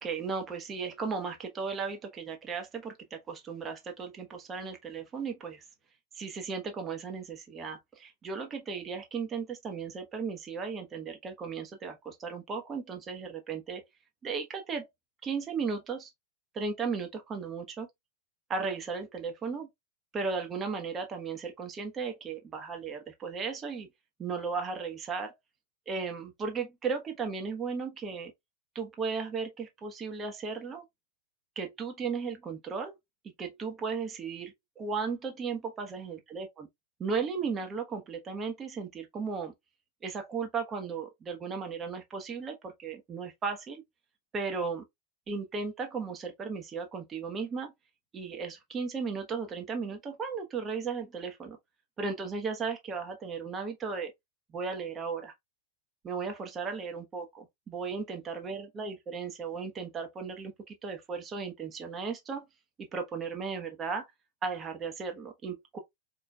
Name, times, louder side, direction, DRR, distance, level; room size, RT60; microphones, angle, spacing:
voice 1, 0.0-5.6 6.1-13.8 14.2-14.9 15.2-16.1 16.5-17.9 18.5-19.7 20.1-23.9 24.2-25.3 25.9-28.3 28.7-30.8 31.6-33.0 33.4-36.7 37.0-39.5 40.0-43.8 44.3-44.8 45.3-47.7 48.1-51.6 52.0-54.1 54.5-55.3 56.0-62.4 62.9-64.1 64.4-65.8, right 5 dB, 25° right, 1.0 m, -35 dB
4.3 x 4.1 x 2.3 m
figure-of-eight pair, 90°, 0 cm